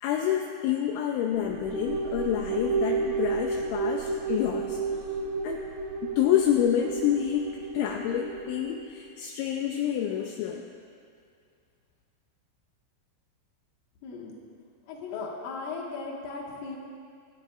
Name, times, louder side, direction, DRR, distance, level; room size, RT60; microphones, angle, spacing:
voice 1, 0.0-4.8 5.4-5.7 6.2-10.6, left 10 dB, 80° left, 2 dB, 2.8 m, -28 dB
sound 1, 1.3-8.9, right 4 dB, 75° right, 3.1 m, -32 dB
voice 2, 14.0-14.4 14.9-16.8, left 4 dB, 60° left, -3 dB, 2.7 m, -37 dB
25.0 x 11.5 x 2.5 m, 2.3 s
omnidirectional pair, 5.7 m